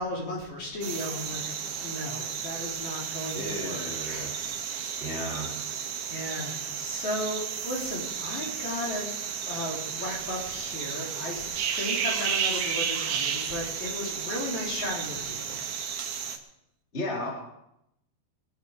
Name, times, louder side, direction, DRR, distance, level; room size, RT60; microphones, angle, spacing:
voice 1, 0.0-1.4 1.8-5.1 6.1-9.0 9.5-15.6, left 1 dB, 50° left, -3 dB, 4.8 m, -35 dB
sound 1, 0.8-16.4, right 7 dB, 75° right, 3.3 m, -33 dB
voice 2, 3.3-4.3 5.0-5.5 16.9-17.3, left 1 dB, 15° left, -3 dB, 3.6 m, -34 dB
22.5 x 11.0 x 4.8 m, 0.81 s
omnidirectional pair, 4.4 m